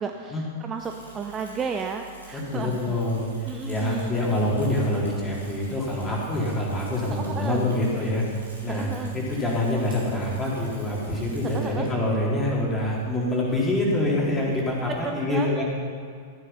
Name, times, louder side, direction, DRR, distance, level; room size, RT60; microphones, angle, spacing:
voice 1, 0.0-3.0 3.5-4.1 7.1-7.6 8.7-9.1 11.4-11.9 14.9-15.6, right 5 dB, 20° right, 4 dB, 0.7 m, -33 dB
Bicycle / Mechanisms, 0.8-15.1, right 4 dB, 80° right, 3.4 m, -47 dB
voice 2, 2.3-15.6, left 1 dB, 15° left, -5 dB, 3.6 m, -26 dB
14.0 x 9.9 x 5.7 m, 2.3 s
figure-of-eight pair, 95°, 0 cm